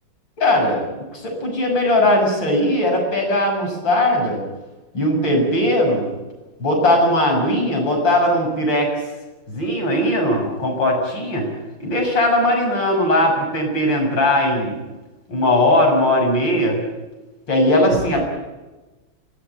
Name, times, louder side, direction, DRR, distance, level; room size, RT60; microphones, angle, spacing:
voice 1, 0.4-0.8 1.1-4.4 4.9-6.1 6.6-8.9 9.5-11.5 11.8-14.8 15.3-16.8 17.5-18.2, left 1 dB, 65° left, 1 dB, 7.4 m, -19 dB
24.5 x 17.5 x 9.1 m, 1.1 s
omnidirectional pair, 2.2 m